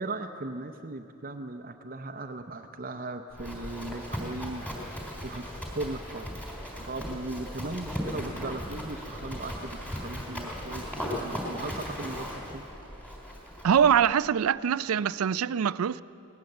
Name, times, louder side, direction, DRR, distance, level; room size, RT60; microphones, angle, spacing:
voice 1, 0.0-6.3 6.8-12.6, right 2 dB, 40° right, 0.7 m, -38 dB
Livestock farm animals working animals, 3.3-14.1, equal, 5° left, 3.4 m, -37 dB
voice 2, 13.6-16.0, right 8 dB, 90° right, 0.4 m, -23 dB
19.5 x 18.0 x 7.9 m
head